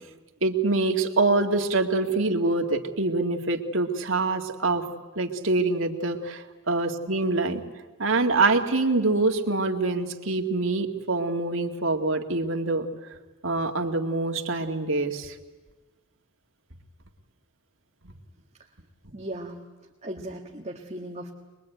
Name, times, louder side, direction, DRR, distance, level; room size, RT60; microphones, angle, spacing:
voice 1, 0.4-4.8 5.2-7.6 8.0-12.9 13.4-15.3, right 3 dB, 75° right, 3 dB, 2.1 m, -25 dB
voice 2, 19.1-19.6 20.0-21.3, right 1 dB, 35° right, 0 dB, 1.7 m, -37 dB
23.5 x 22.5 x 9.2 m, 1.2 s
head